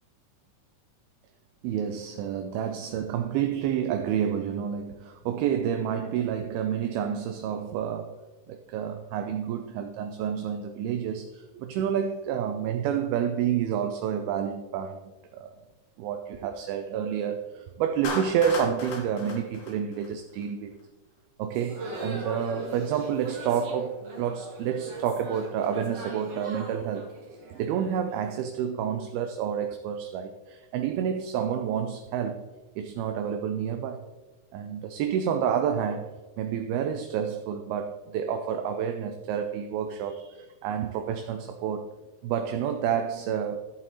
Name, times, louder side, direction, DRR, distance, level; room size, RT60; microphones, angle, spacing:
voice 1, 1.6-8.2 8.5-15.5 16.0-20.8 21.4-27.1 27.5-32.5 32.8-34.0 34.5-41.9 42.2-43.7, right 8 dB, 80° right, 2.2 m, -29 dB
Clapping, 18.0-20.4, left 3 dB, 85° left, 3.6 m, -36 dB
sound 1, 21.5-28.5, right 2 dB, 55° right, 2.0 m, -40 dB
13.5 x 7.5 x 3.0 m
omnidirectional pair, 4.8 m